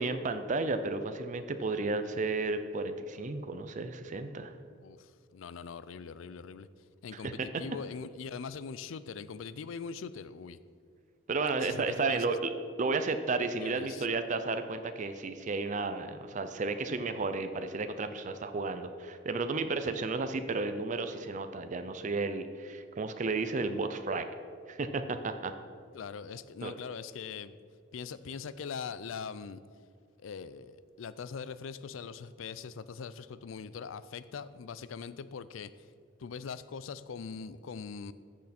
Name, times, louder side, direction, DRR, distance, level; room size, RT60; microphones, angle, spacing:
voice 1, 0.0-4.5 7.1-7.3 11.3-12.5 12.8-24.3 24.7-25.5 26.6-26.7, right 3 dB, 40° right, 9 dB, 0.5 m, -33 dB
voice 2, 4.7-10.6 11.6-12.3 13.6-14.1 25.9-27.6 27.9-29.6 30.2-35.9 36.2-38.1, left 6 dB, 85° left, 15 dB, 0.4 m, -42 dB
13.5 x 6.5 x 4.3 m, 2.2 s
head